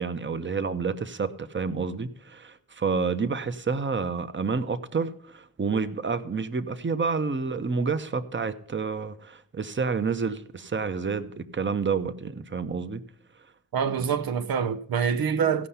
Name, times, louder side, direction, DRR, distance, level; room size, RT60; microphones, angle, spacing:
voice 1, 0.0-13.0, right 5 dB, 35° right, 0.9 m, -29 dB
voice 2, 13.7-15.7, right 7 dB, 85° right, 0.7 m, -25 dB
15.5 x 5.7 x 5.6 m
wide cardioid pair, 80°, 35 cm